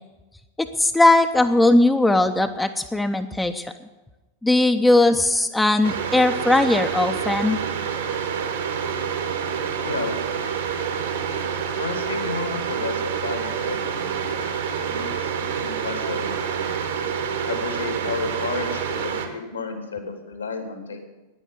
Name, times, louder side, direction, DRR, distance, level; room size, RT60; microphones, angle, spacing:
voice 1, 0.6-3.7 4.4-7.6, left 2 dB, 5° left, 7 dB, 0.7 m, -19 dB
sound 1, 5.8-19.3, right 7 dB, 60° right, 1.7 m, -27 dB
voice 2, 9.8-10.2 11.8-14.5 14.8-16.8 17.5-21.1, left 4 dB, 75° left, 5 dB, 2.6 m, -32 dB
10.0 x 10.0 x 9.1 m, 1.1 s
figure-of-eight pair, 90°, 0 cm